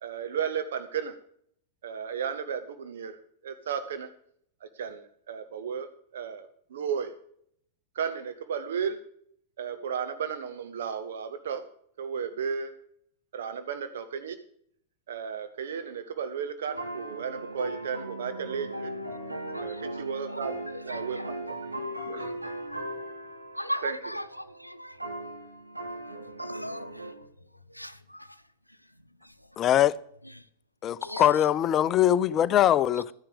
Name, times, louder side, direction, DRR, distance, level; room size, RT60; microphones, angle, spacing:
voice 1, 0.0-1.2 1.8-3.2 3.4-4.1 4.6-7.1 7.9-9.0 9.6-11.6 12.0-12.7 13.3-14.4 15.1-18.9 19.6-21.2 22.1-22.3 23.8-24.2, right 7 dB, 60° right, 0.9 m, -34 dB
sound 1, 16.6-27.1, right 1 dB, 85° right, 2.2 m, -38 dB
voice 2, 19.5-19.8 20.3-20.4 20.7-21.2 22.7-22.8 23.5-24.2 24.6-24.9 26.4-26.9 27.7-28.3 31.0-31.3, equal, 90° left, 0.6 m, -37 dB
voice 3, 29.6-30.0 30.8-33.1, left 11 dB, 30° left, 0.5 m, -22 dB
14.0 x 10.0 x 5.1 m
figure-of-eight pair, 95°, 0 cm